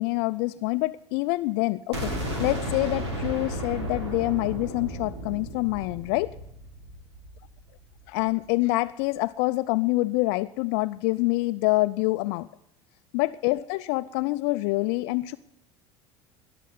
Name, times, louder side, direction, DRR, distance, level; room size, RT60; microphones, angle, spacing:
voice 1, 0.0-2.1 2.4-6.3 8.1-12.5 13.1-15.4, left 21 dB, 60° left, 10 dB, 0.5 m, -26 dB
sound 1, 1.9-7.7, right 1 dB, 80° right, 3.8 m, -33 dB
20.0 x 6.9 x 9.3 m, 0.81 s
hypercardioid pair, 75°, 14 cm